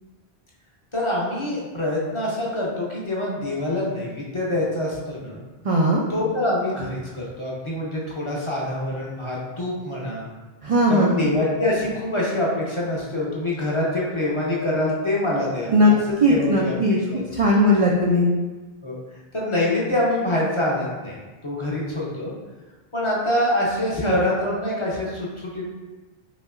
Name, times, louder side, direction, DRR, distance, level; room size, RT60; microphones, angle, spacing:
voice 1, 0.9-5.4 6.1-10.3 10.9-16.8 17.1-17.2 18.8-19.0 19.3-21.2 21.4-22.3 22.9-25.7, left 1 dB, 35° left, -5 dB, 0.7 m, -25 dB
voice 2, 5.6-6.0 10.6-11.2 15.7-15.9 16.2-17.0 17.3-18.3, equal, 55° right, -2 dB, 0.4 m, -18 dB
5.2 x 2.8 x 2.5 m, 1.2 s
omnidirectional pair, 1.1 m